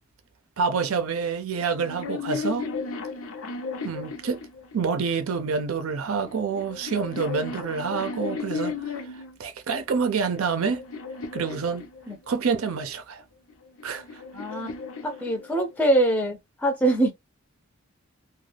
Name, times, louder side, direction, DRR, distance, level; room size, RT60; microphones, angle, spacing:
voice 1, 0.6-2.7 3.8-4.4 4.7-10.8 11.3-11.9 12.3-13.2 13.8-14.0, right 5 dB, 75° right, 0.5 m, -27 dB
sound 1, 1.7-5.1 6.0-9.4 10.0-12.5 13.5-15.9, left 4 dB, 75° left, 0.6 m, -35 dB
voice 2, 14.3-14.7 15.0-17.1, right 1 dB, 5° left, 0.5 m, -23 dB
2.3 x 2.2 x 3.2 m
head